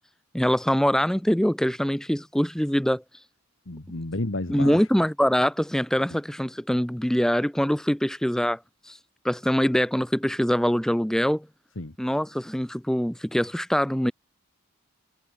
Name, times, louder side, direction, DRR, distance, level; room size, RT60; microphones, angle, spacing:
voice 1, 0.3-3.0 4.5-8.6 8.9-9.0 9.2-11.5 12.0-14.1, equal, ahead, 0.6 m, -23 dB
voice 2, 3.7-4.8 11.8-11.9, left 2 dB, 60° left, 1.6 m, -31 dB
head